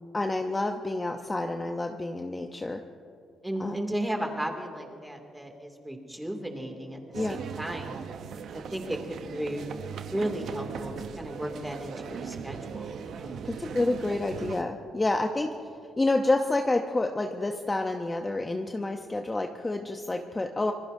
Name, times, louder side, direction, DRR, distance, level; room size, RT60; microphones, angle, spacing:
voice 1, 0.1-2.8 3.6-3.8 7.1-7.4 13.4-15.5 16.0-20.7, left 2 dB, 20° left, 4 dB, 0.8 m, -28 dB
voice 2, 3.4-8.0 8.5-9.7 10.1-13.5, right 1 dB, 5° right, 3 dB, 2.5 m, -35 dB
sound 1, 7.1-14.6, right 7 dB, 70° right, 0.8 m, -39 dB
26.5 x 20.0 x 2.7 m, 2.4 s
cardioid pair, 90°, 0 cm